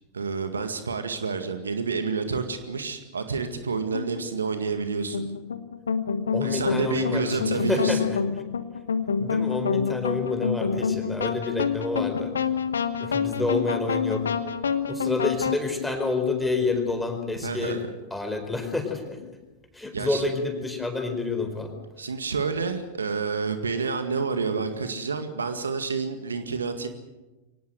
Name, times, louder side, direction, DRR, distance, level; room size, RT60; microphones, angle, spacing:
voice 1, 0.1-5.2 6.4-8.1 17.4-17.8 19.9-20.2 22.0-26.9, right 5 dB, 70° right, 9 dB, 1.9 m, -29 dB
sound 1, 3.9-4.2 5.1-15.6, left 6 dB, 70° left, 1.3 m, -27 dB
voice 2, 6.3-8.2 9.2-12.3 13.0-14.3 14.9-17.8 18.1-19.2 19.7-21.7, left 3 dB, 5° left, 5 dB, 4.4 m, -28 dB
24.0 x 18.5 x 7.8 m, 1.1 s
figure-of-eight pair, 90°, 0 cm